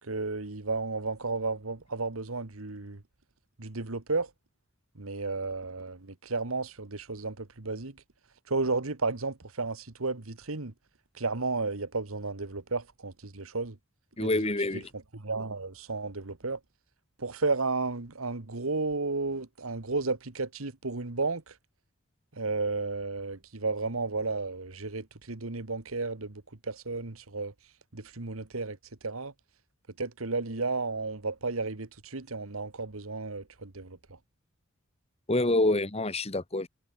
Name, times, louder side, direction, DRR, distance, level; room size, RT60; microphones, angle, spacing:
voice 1, 0.0-3.0 3.6-4.3 4.9-8.0 8.5-10.7 11.1-13.8 14.2-14.5 15.1-16.6 17.2-21.5 22.3-27.5 27.9-28.8 29.0-29.3 30.0-34.2, right 3 dB, 85° right, 1.7 m, -33 dB
voice 2, 14.2-14.9 35.3-36.7, left 2 dB, 30° left, 1.7 m, -27 dB
head